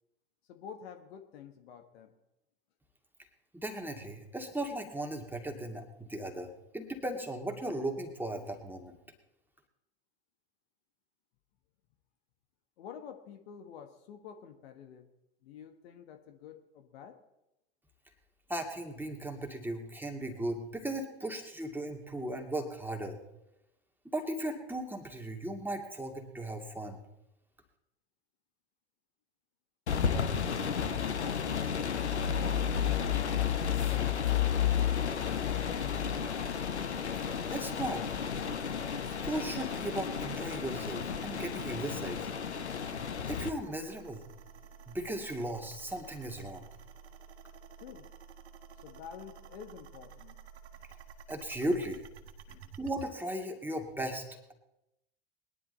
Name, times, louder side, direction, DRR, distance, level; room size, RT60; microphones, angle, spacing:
voice 1, 0.5-2.1 12.8-15.1 15.4-17.2 30.0-30.4 31.2-34.5 35.2-36.5 47.8-48.1 48.8-50.4 52.5-52.7, left 8 dB, 65° left, 7 dB, 1.4 m, -49 dB
voice 2, 3.5-9.0 18.5-23.2 24.0-27.0 37.5-38.1 39.2-42.2 43.3-44.2 44.9-46.7 51.3-52.0 52.8-54.2, right 1 dB, 5° right, 2 dB, 2.3 m, -37 dB
sound 1, 29.9-43.5, left 8 dB, 85° left, 0.9 m, -32 dB
sound 2, 34.8-53.1, right 6 dB, 70° right, 1.4 m, -52 dB
20.5 x 11.0 x 4.0 m, 0.89 s
figure-of-eight pair, 75°, 33 cm